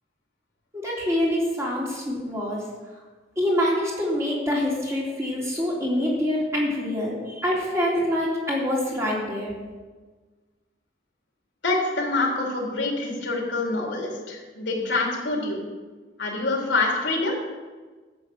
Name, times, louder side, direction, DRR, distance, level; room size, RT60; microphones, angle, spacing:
voice 1, 0.7-2.6 3.4-9.6, left 1 dB, 15° right, -5 dB, 3.3 m, -25 dB
voice 2, 11.6-15.6 16.2-17.3, left 2 dB, 85° left, -1 dB, 3.5 m, -26 dB
12.5 x 8.6 x 6.3 m, 1.3 s
head